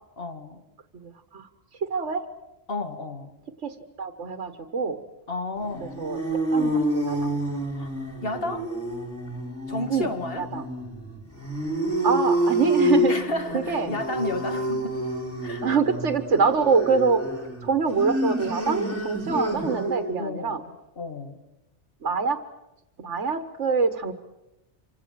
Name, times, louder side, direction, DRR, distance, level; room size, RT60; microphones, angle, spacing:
voice 1, 0.2-0.6 2.7-3.3 5.3-6.0 7.7-7.9 8.2-8.7 9.7-10.5 13.1-15.0 15.4-15.6 20.2-20.6 21.0-21.4, left 2 dB, 55° left, 2.3 m, -32 dB
voice 2, 0.9-1.5 1.8-2.2 3.6-5.0 5.8-6.2 6.5-7.3 9.9-10.1 10.3-10.7 12.0-13.2 13.5-13.9 15.6-17.2 17.6-20.6 22.0-22.4 23.0-24.1, right 5 dB, 90° right, 1.7 m, -25 dB
sound 1, 5.6-20.1, right 1 dB, 10° left, 6.4 m, -28 dB
26.5 x 25.5 x 7.6 m
omnidirectional pair, 1.2 m